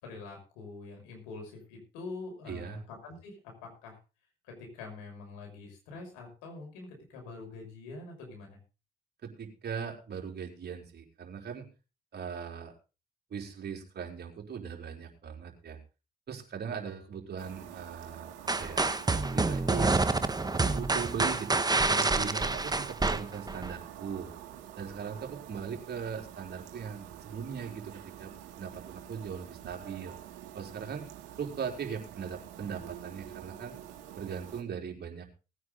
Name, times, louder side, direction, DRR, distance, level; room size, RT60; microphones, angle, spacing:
voice 1, 0.0-3.4 3.6-4.0 4.4-8.6, left 3 dB, 85° left, 1 dB, 6.0 m, -45 dB
voice 2, 2.5-2.8 9.2-11.7 12.1-12.7 13.3-15.8 16.3-18.8 19.1-20.0 20.5-24.3 24.8-28.3 28.6-30.1 30.5-31.1 31.4-33.8 34.2-35.3, right 7 dB, 55° right, 1 dB, 4.3 m, -39 dB
sound 1, 17.4-34.6, right 11 dB, 75° right, 2.6 m, -47 dB
sound 2, 18.5-23.7, right 3 dB, 20° right, 1.4 m, -28 dB
19.5 x 9.4 x 3.9 m, 0.31 s
hypercardioid pair, 45°, 20 cm